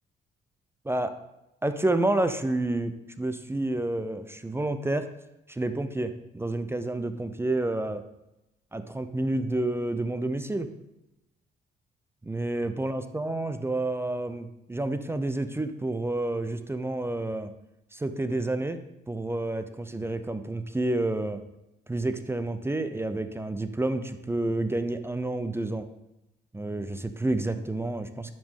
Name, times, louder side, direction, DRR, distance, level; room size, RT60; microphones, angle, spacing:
voice 1, 1.6-5.1 5.5-8.0 8.7-10.7 12.2-17.5 17.9-18.8 19.1-21.4 21.9-25.9 26.5-28.3, right 2 dB, 10° right, 10 dB, 0.5 m, -29 dB
10.5 x 5.1 x 3.7 m, 0.91 s
cardioid pair, 90°, 20 cm